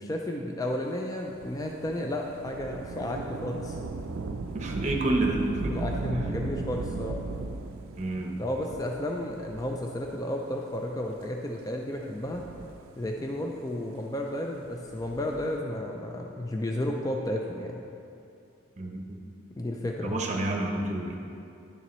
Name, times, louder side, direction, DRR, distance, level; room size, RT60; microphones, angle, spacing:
voice 1, 0.0-3.8 5.7-7.2 8.4-12.5 13.0-17.8 19.5-20.2, left 1 dB, 15° left, 1 dB, 0.4 m, -32 dB
Thunder / Rain, 1.3-10.2 11.0-11.1 12.0-13.3 14.8-15.6, right 3 dB, 85° right, 0.4 m, -37 dB
voice 2, 4.5-5.7 8.0-8.3 18.8-19.0 20.0-21.2, right 2 dB, 35° right, 1 dB, 0.8 m, -29 dB
10.5 x 6.8 x 3.1 m, 2.6 s
head